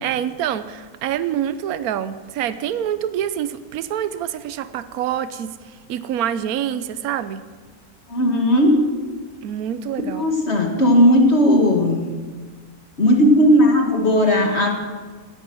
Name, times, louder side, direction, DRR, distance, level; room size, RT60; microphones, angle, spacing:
voice 1, 0.0-5.5 5.9-7.5 9.4-10.3, right 10 dB, 75° right, 13 dB, 1.2 m, -26 dB
voice 2, 8.1-8.8 10.1-12.0 13.0-14.8, left 1 dB, 45° left, 2 dB, 2.2 m, -16 dB
18.0 x 13.0 x 6.2 m, 1.4 s
omnidirectional pair, 1.6 m